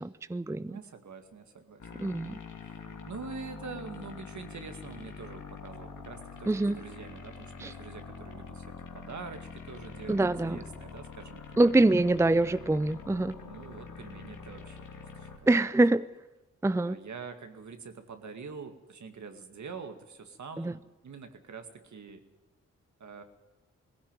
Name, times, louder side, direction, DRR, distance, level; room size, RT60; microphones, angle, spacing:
voice 1, 0.0-0.7 2.0-2.4 6.5-6.8 7.6-7.7 10.1-10.6 11.6-13.3 15.5-16.1 16.6-17.0 20.6-20.7, right 2 dB, 10° right, 15 dB, 0.6 m, -25 dB
voice 2, 0.7-1.9 2.6-2.8 3.1-11.7 13.4-15.3 16.8-22.2 23.0-23.2, right 5 dB, 70° right, 6 dB, 2.2 m, -45 dB
sound 1, 1.8-15.4, left 5 dB, 85° left, 2.7 m, -45 dB
18.5 x 16.0 x 9.1 m, 1.1 s
cardioid pair, 50°, 30 cm